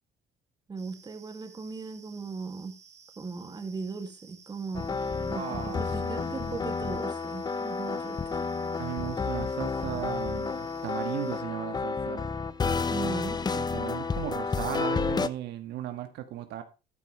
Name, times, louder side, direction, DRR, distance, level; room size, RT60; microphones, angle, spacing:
voice 1, 0.7-2.8 3.2-8.4 12.9-13.4, right 4 dB, 25° right, 2.3 m, -38 dB
sound 1, 0.8-11.4, right 6 dB, 40° right, 2.0 m, -55 dB
sound 2, 4.7-15.3, left 4 dB, 25° left, 0.8 m, -31 dB
voice 2, 5.3-6.6 8.8-12.3 13.5-16.6, right 12 dB, 85° right, 1.7 m, -37 dB
14.0 x 8.9 x 3.2 m
cardioid pair, 110°, 17 cm